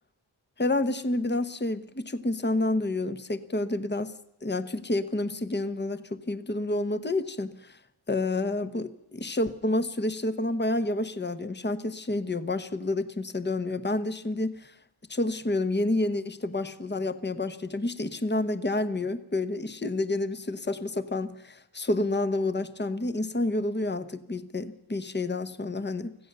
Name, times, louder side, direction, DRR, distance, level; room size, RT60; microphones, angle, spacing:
voice 1, 0.6-4.1 4.4-7.8 8.1-14.7 15.1-26.2, left 2 dB, 20° left, 11 dB, 1.1 m, -29 dB
25.0 x 15.5 x 6.7 m, 0.85 s
wide cardioid pair, 75°, 48 cm